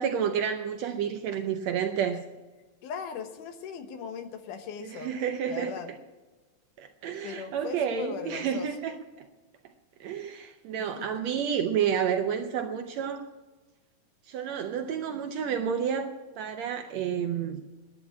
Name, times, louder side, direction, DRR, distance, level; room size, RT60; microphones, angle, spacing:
voice 1, 0.0-2.2 4.8-5.7 6.8-9.3 10.0-13.3 14.3-17.6, right 8 dB, 70° right, 7 dB, 1.7 m, -30 dB
voice 2, 2.8-5.1 5.5-5.9 7.2-8.7 11.0-11.1, left 6 dB, 75° left, 8 dB, 2.6 m, -38 dB
11.0 x 10.0 x 8.5 m, 1.2 s
omnidirectional pair, 3.8 m